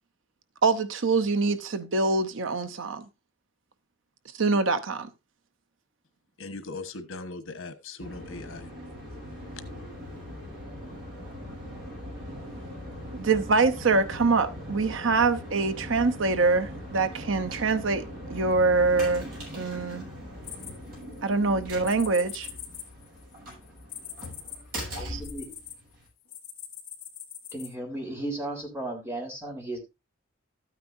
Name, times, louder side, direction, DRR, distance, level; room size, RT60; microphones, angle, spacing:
voice 1, 0.6-3.0 4.4-5.1 13.1-20.0 21.2-22.5 24.9-25.2, right 3 dB, 70° right, 0.8 m, -25 dB
voice 2, 6.4-8.7 9.6-9.7, left 3 dB, 90° left, 1.3 m, -39 dB
sound 1, 8.0-26.1, equal, 45° right, 7.6 m, -40 dB
sound 2, 20.4-21.3 21.8-25.7 26.3-27.7, left 10 dB, 45° left, 2.6 m, -42 dB
voice 3, 24.9-25.5 27.5-29.8, right 1 dB, 10° right, 3.6 m, -35 dB
13.5 x 9.1 x 2.6 m
head